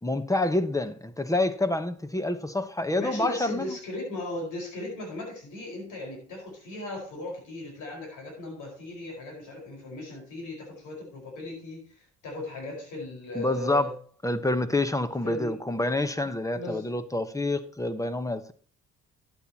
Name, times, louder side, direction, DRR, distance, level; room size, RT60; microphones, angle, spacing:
voice 1, 0.0-3.8 13.3-13.9 14.2-18.5, left 2 dB, 10° left, 1.1 m, -27 dB
voice 2, 3.0-13.9 15.2-15.6 16.5-16.9, left 2 dB, 80° left, 5.0 m, -37 dB
12.5 x 8.9 x 2.9 m
cardioid pair, 90°, 30 cm